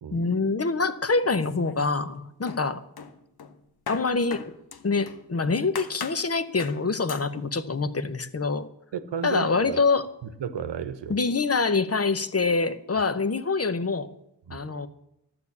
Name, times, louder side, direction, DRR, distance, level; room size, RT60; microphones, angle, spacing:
voice 1, 0.1-2.8 3.9-4.5 4.8-8.7 9.2-10.0 11.1-14.1 14.5-14.9, left 4 dB, 35° left, 13 dB, 0.9 m, -25 dB
sound 1, 1.4-2.1 2.5-5.3 5.8-6.3 6.6-6.8 7.1-7.3, left 6 dB, 60° left, 1.1 m, -39 dB
voice 2, 8.9-9.8 10.2-11.2 14.5-14.6, right 7 dB, 85° right, 12 dB, 1.0 m, -33 dB
12.0 x 7.0 x 8.4 m, 0.81 s
cardioid pair, 70°, 41 cm